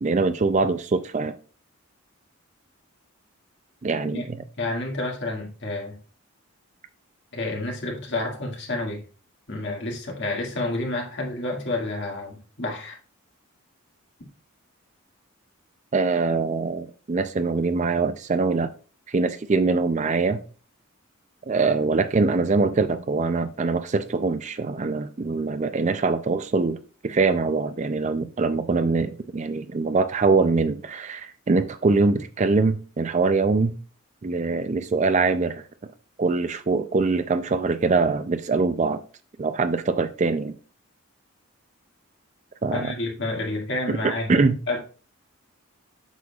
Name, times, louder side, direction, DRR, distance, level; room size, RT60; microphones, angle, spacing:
voice 1, 0.0-1.4 3.8-4.4 15.9-18.7 19.1-20.4 21.5-33.8 34.2-35.6 36.2-39.0 39.4-40.6 42.6-42.9 43.9-44.6, right 3 dB, 35° right, 0.4 m, -23 dB
voice 2, 4.6-6.0 7.3-9.0 9.5-13.0 42.7-44.4 44.7-44.8, left 2 dB, 55° left, 2.0 m, -29 dB
8.1 x 6.4 x 2.4 m
head